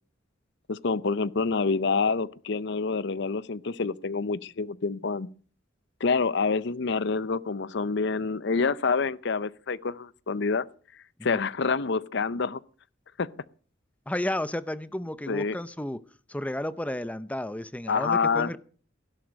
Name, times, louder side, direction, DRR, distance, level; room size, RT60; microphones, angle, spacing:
voice 1, 0.7-5.3 6.0-10.7 11.2-12.6 13.2-13.3 15.3-15.6 17.9-18.6, left 4 dB, 60° left, 0.7 m, -27 dB
voice 2, 14.1-16.0 16.3-18.6, left 1 dB, 5° left, 0.6 m, -32 dB
16.5 x 11.5 x 6.3 m
head